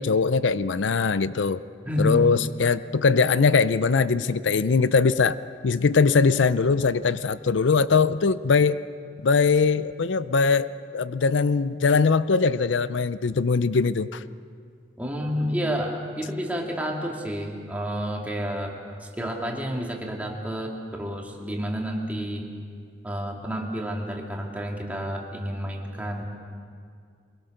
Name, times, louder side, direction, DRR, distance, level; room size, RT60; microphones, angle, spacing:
voice 1, 0.0-1.6 2.0-5.4 5.6-8.8 9.2-14.2, left 4 dB, 90° left, 15 dB, 0.5 m, -21 dB
voice 2, 1.9-2.3 15.0-22.5 23.0-26.2, equal, 10° right, -1 dB, 2.3 m, -30 dB
23.5 x 21.5 x 6.6 m, 2.2 s
head